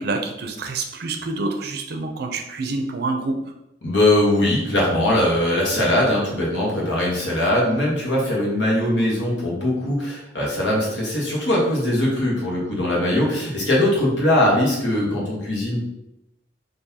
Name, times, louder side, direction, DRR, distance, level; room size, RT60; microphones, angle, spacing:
voice 1, 0.0-3.4, right 3 dB, 55° right, 4 dB, 0.5 m, -27 dB
voice 2, 3.8-15.8, left 1 dB, 75° left, -4 dB, 1.2 m, -21 dB
3.8 x 2.6 x 2.7 m, 0.89 s
head